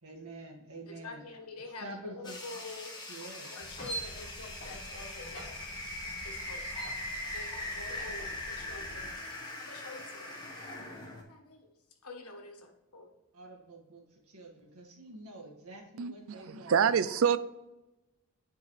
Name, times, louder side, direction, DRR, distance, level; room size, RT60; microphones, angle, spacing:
voice 1, 0.0-1.3 1.8-2.4 3.1-3.5 13.3-16.9, right 1 dB, 80° right, 1.9 m, -47 dB
voice 2, 0.9-2.9 3.4-5.6 6.2-6.8 7.3-9.3 9.6-10.4 10.9-11.7 12.0-13.1, left 3 dB, 90° left, 1.5 m, -47 dB
sound 1, 2.2-11.2, left 1 dB, 20° left, 1.4 m, -41 dB
sound 2, 3.6-9.2, right 1 dB, 40° left, 2.5 m, -45 dB
voice 3, 16.0-17.4, right 7 dB, 65° right, 0.4 m, -27 dB
10.0 x 4.6 x 3.3 m
head